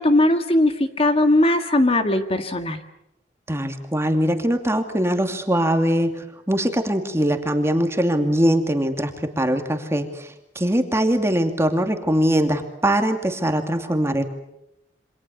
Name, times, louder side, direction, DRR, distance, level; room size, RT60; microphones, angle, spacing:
voice 1, 0.0-2.8, left 1 dB, 35° left, 7 dB, 1.8 m, -19 dB
voice 2, 3.5-14.2, right 1 dB, 15° right, 6 dB, 2.5 m, -22 dB
28.0 x 25.5 x 7.1 m, 0.82 s
head